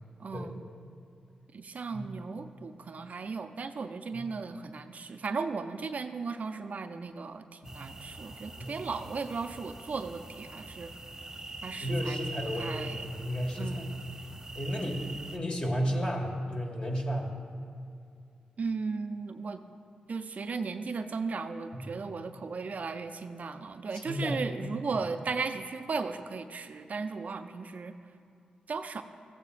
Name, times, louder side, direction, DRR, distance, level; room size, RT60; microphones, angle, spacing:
voice 1, 0.2-0.6 1.5-10.9 11.6-12.2 12.6-13.1 13.6-14.0 18.6-19.6 20.1-27.9 28.7-29.0, right 4 dB, 55° right, 8 dB, 0.4 m, -36 dB
sound 1, 7.6-15.4, right 2 dB, 20° right, 0.9 m, -43 dB
voice 2, 11.8-13.9 14.5-17.3 21.7-21.9 23.9-24.4, equal, 35° left, 0 dB, 1.7 m, -33 dB
14.5 x 8.4 x 2.5 m, 2.5 s
supercardioid pair, 45°, 3 cm